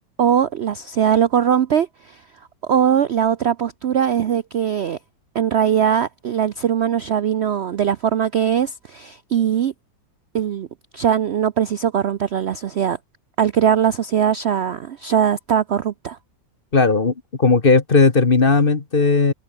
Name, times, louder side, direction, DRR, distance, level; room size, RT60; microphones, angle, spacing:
voice 1, 0.2-2.2 2.7-5.0 5.3-9.7 10.3-10.7 10.9-13.0 13.4-16.2, right 8 dB, 75° right, 0.6 m, -20 dB
voice 2, 16.7-19.3, left 4 dB, 30° left, 1.6 m, -16 dB
omnidirectional pair, 2.0 m